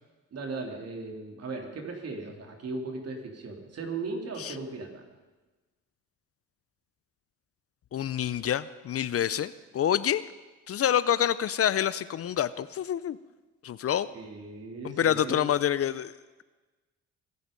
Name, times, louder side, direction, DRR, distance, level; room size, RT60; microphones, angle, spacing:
voice 1, 0.3-5.0 14.1-15.5, right 3 dB, 55° right, 2 dB, 3.4 m, -37 dB
voice 2, 7.9-10.2 10.7-13.2 13.6-14.1 14.8-16.1, left 10 dB, 50° left, 17 dB, 0.6 m, -27 dB
23.0 x 11.0 x 5.3 m, 1.2 s
cardioid pair, 90°, 30 cm